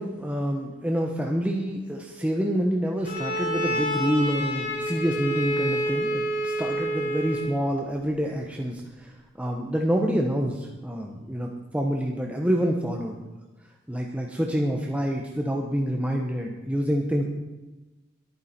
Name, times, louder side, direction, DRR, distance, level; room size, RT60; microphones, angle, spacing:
voice 1, 0.0-13.3 13.9-17.2, equal, 5° right, 0 dB, 1.1 m, -27 dB
Bowed string instrument, 3.0-7.6, equal, 40° left, 6.3 m, -28 dB
22.0 x 9.6 x 4.4 m, 1.1 s
head